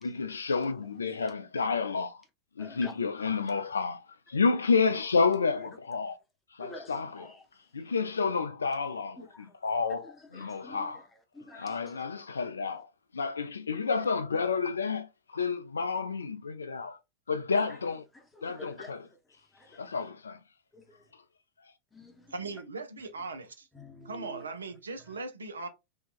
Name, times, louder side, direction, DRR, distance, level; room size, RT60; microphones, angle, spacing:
voice 1, 0.0-2.2 2.6-4.0 4.3-6.2 6.6-7.2 7.7-9.2 9.6-11.0 11.5-12.9 13.1-17.0 17.3-18.0 18.4-19.0 19.8-20.4, left 4 dB, 75° left, 0.3 m, -30 dB
voice 2, 2.6-2.9 6.6-7.5 9.2-9.6 10.0-11.9 17.5-17.8 18.1-19.2 19.5-19.8 20.7-21.1 21.9-22.3 23.7-24.5, left 1 dB, 10° left, 0.7 m, -49 dB
voice 3, 22.3-23.7 24.0-25.7, right 3 dB, 70° right, 0.5 m, -39 dB
2.6 x 2.2 x 2.4 m
figure-of-eight pair, 90°, 0 cm